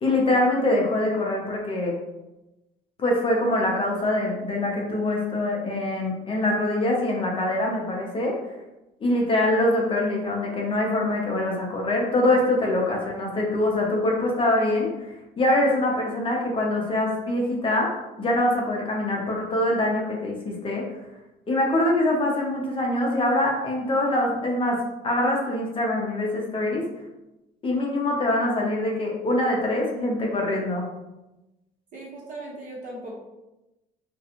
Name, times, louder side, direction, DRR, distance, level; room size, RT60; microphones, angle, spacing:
voice 1, 0.0-1.9 3.0-8.4 9.0-14.9 15.4-17.9 18.2-20.8 21.5-26.8 27.6-30.8, left 1 dB, 30° left, -1 dB, 0.6 m, -24 dB
voice 2, 31.9-33.1, right 2 dB, 50° right, -5 dB, 1.1 m, -38 dB
2.4 x 2.2 x 2.9 m, 0.98 s
cardioid pair, 110°, 17 cm